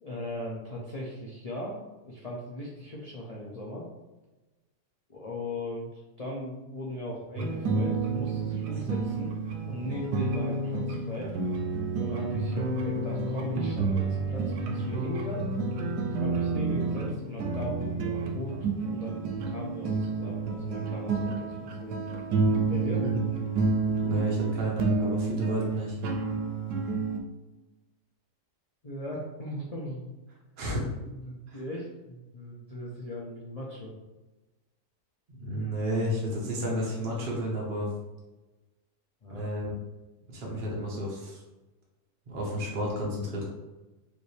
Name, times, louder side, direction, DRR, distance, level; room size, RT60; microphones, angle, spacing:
voice 1, 0.0-3.9 5.1-9.3 9.7-11.4 12.0-15.5 16.2-21.5 21.8-22.1 22.7-23.1 28.8-30.1 31.0-33.9 39.2-39.5, left 1 dB, 70° left, -5 dB, 0.3 m, -38 dB
sound 1, 7.4-27.2, right 3 dB, 85° right, 1.2 m, -29 dB
voice 2, 24.0-26.0 30.6-30.8 31.5-31.6 35.3-37.9 39.3-39.7 40.3-41.4 42.3-43.5, equal, 40° right, -3 dB, 1.0 m, -31 dB
5.2 x 2.6 x 3.2 m, 1.1 s
omnidirectional pair, 1.7 m